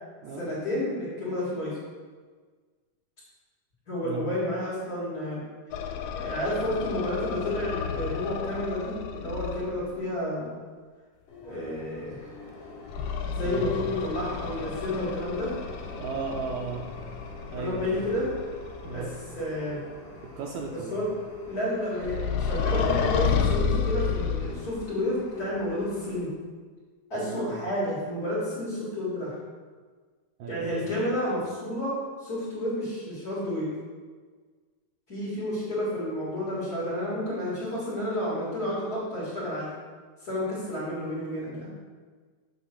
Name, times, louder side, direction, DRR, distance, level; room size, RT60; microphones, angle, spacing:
voice 1, 0.4-1.8 3.9-5.4 6.1-10.5 11.4-12.2 13.3-15.5 17.5-18.3 18.9-19.0 19.3-19.8 20.9-21.1 21.4-26.3 27.1-29.4 30.5-33.7 35.1-39.7 40.2-41.7, left 1 dB, 30° left, -9 dB, 2.4 m, -30 dB
sound 1, 5.7-9.8 12.9-19.2 22.0-24.9, left 6 dB, 90° left, 2.3 m, -31 dB
sound 2, 11.3-26.3, left 2 dB, 55° left, 2.3 m, -46 dB
voice 2, 16.0-16.9 17.5-18.1 18.8-19.1 20.4-21.1 27.2-27.6 30.4-30.9, right 4 dB, 80° right, 1 dB, 1.9 m, -35 dB
7.2 x 3.8 x 6.2 m, 1.5 s
omnidirectional pair, 3.8 m